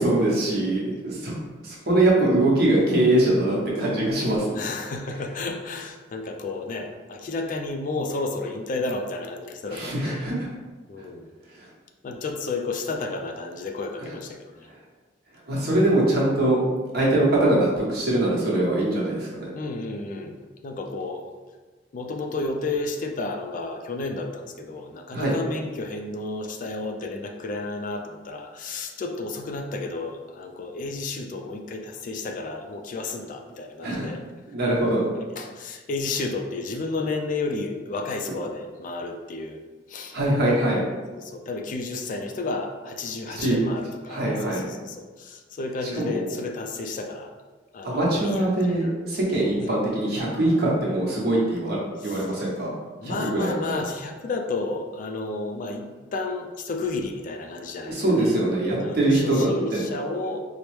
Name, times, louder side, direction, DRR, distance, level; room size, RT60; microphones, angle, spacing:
voice 1, 0.0-1.3 1.6-4.5 5.1-5.2 9.7-10.5 11.6-11.7 14.0-14.1 15.5-16.6 16.9-19.5 25.1-25.3 33.8-34.1 34.5-35.0 40.1-40.9 43.3-43.6 44.1-44.6 45.8-46.3 47.8-51.8 52.0-52.7 53.0-53.8 57.8-59.8, right 1 dB, 60° right, -5 dB, 1.0 m, -23 dB
voice 2, 0.6-0.9 4.6-10.2 10.9-11.3 12.0-14.4 19.5-20.4 20.6-21.3 21.9-34.2 34.9-39.6 39.9-40.2 41.1-47.3 47.7-48.4 49.6-49.7 53.0-55.8 56.1-58.3 58.8-60.5, left 3 dB, 45° left, 3 dB, 0.3 m, -32 dB
4.4 x 2.0 x 3.1 m, 1.4 s
head